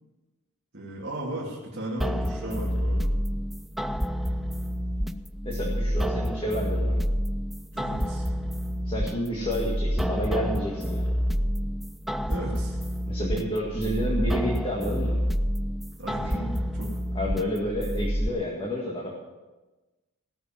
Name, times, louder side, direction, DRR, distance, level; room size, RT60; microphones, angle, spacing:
voice 1, 0.7-3.1 7.7-8.2 12.3-12.8 16.0-16.9, right 1 dB, 50° right, -6 dB, 2.5 m, -35 dB
sound 1, 2.0-18.3, equal, ahead, 0.3 m, -28 dB
voice 2, 5.4-7.0 8.9-11.0 13.1-15.2 16.2-16.3 17.1-19.2, equal, 25° left, -3 dB, 1.8 m, -30 dB
17.0 x 6.9 x 7.4 m, 1.2 s
head